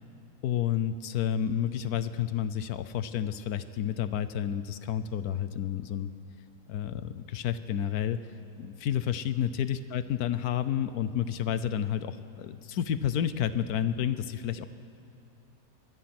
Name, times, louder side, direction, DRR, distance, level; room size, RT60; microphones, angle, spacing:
voice 1, 0.4-6.1 6.7-8.2 8.6-14.7, left 10 dB, 90° left, 12 dB, 1.3 m, -30 dB
24.5 x 21.5 x 6.0 m, 2.5 s
omnidirectional pair, 1.6 m